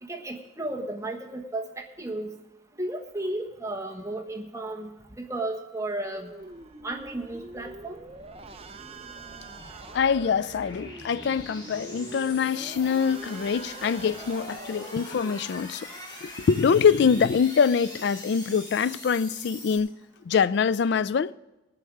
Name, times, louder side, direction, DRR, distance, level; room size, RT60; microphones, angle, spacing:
voice 1, 0.0-2.3 2.8-6.3 6.8-8.0, right 2 dB, 15° right, 1.2 m, -34 dB
sound 1, 6.0-19.8, left 1 dB, 20° left, 3.1 m, -43 dB
sound 2, 6.1-15.3, right 3 dB, 30° right, 0.6 m, -45 dB
voice 2, 9.9-15.9 16.2-19.9 20.2-21.3, left 6 dB, 60° left, 0.3 m, -24 dB
20.0 x 7.8 x 4.8 m
head